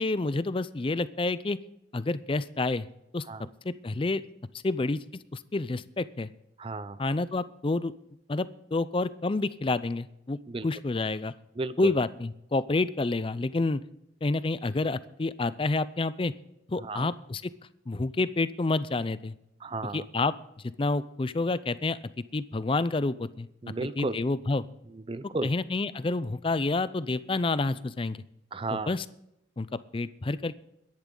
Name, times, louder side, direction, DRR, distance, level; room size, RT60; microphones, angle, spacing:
voice 1, 0.0-1.6 1.9-2.9 3.1-3.2 3.6-4.2 4.6-5.0 5.3-6.3 7.0-7.9 8.3-10.4 10.6-11.3 11.8-13.8 14.2-16.3 16.7-17.4 17.9-19.3 19.9-20.3 20.8-22.0 22.3-23.5 24.0-24.6 25.4-28.2 28.9-29.1 29.6-29.7 29.9-30.6, left 3 dB, 25° left, 16 dB, 0.4 m, -28 dB
voice 2, 6.6-7.0 10.5-10.7 11.6-11.9 16.8-17.1 19.6-20.1 23.6-24.2 24.9-25.5 28.5-29.0, right 3 dB, 30° right, 15 dB, 0.5 m, -34 dB
21.5 x 10.5 x 3.8 m, 0.85 s
head